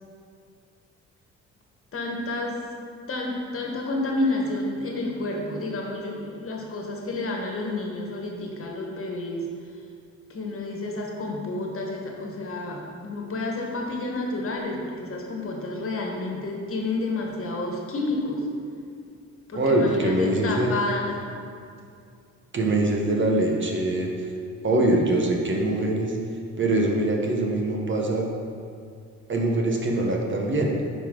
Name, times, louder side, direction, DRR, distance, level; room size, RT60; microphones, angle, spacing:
voice 1, 1.9-2.6 3.1-9.5 10.3-18.4 19.5-21.2, left 2 dB, 45° left, 0 dB, 1.5 m, -30 dB
voice 2, 19.5-20.7 22.5-24.1 24.6-26.2 26.6-28.3 29.3-30.7, right 2 dB, 40° right, 0 dB, 1.1 m, -23 dB
9.5 x 5.1 x 3.9 m, 2.3 s
cardioid pair, 90°, 30 cm